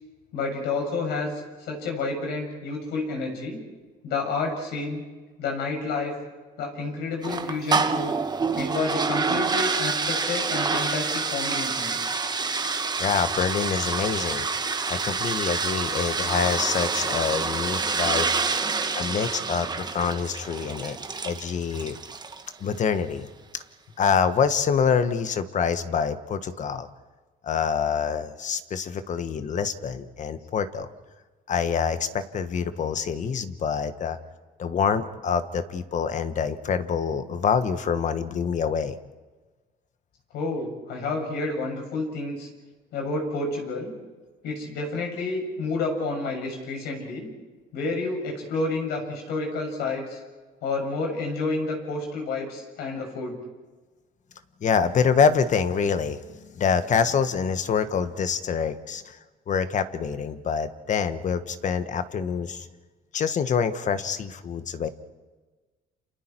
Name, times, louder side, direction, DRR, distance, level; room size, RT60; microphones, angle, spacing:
voice 1, 0.3-1.3 1.6-3.6 4.0-5.0 5.4-6.1 6.6-8.1 8.6-12.0 40.3-42.5 42.9-43.9 44.4-47.3 47.7-50.2 50.6-53.4, left 3 dB, 80° left, 1 dB, 7.2 m, -29 dB
sound 1, 7.2-22.5, right 4 dB, 25° right, 1.3 m, -27 dB
voice 2, 13.0-14.5 14.9-18.3 18.9-21.0 21.2-22.0 22.6-23.6 24.0-26.9 27.4-30.9 31.5-34.2 34.6-39.0 54.6-59.2 59.5-62.7 63.1-64.9, left 6 dB, 45° left, 10 dB, 1.4 m, -26 dB
29.0 x 27.5 x 4.6 m, 1.3 s
cardioid pair, 110°, 17 cm